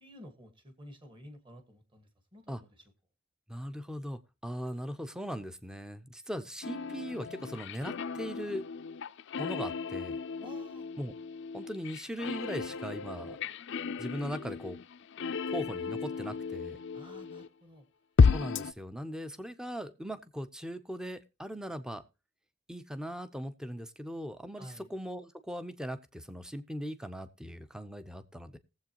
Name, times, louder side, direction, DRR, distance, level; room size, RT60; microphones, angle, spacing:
voice 1, 0.0-2.8 10.4-10.9 16.9-17.8 24.6-24.9, equal, 25° right, 8 dB, 1.6 m, -51 dB
voice 2, 3.5-8.6 9.4-10.1 11.0-11.1 11.5-13.4 14.0-14.8 15.5-16.8 18.3-22.0 22.7-28.6, equal, 5° right, 12 dB, 0.6 m, -39 dB
sound 1, 6.6-17.5 18.2-18.7, left 5 dB, 60° left, 0.5 m, -32 dB
19.0 x 7.7 x 2.9 m, 0.28 s
head